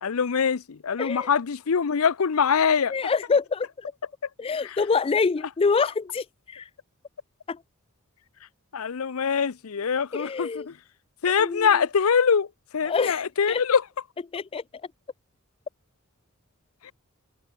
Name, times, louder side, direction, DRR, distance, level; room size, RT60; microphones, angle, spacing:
voice 1, 0.0-2.9 4.6-4.8 8.7-10.8 11.2-13.8 16.8-16.9, left 6 dB, 75° left, 0.6 m, -24 dB
voice 2, 1.0-1.3 2.9-3.7 4.4-6.7 7.5-7.6 10.1-10.7 11.4-11.7 12.9-13.6 14.3-14.6, left 5 dB, 25° left, 0.3 m, -26 dB
head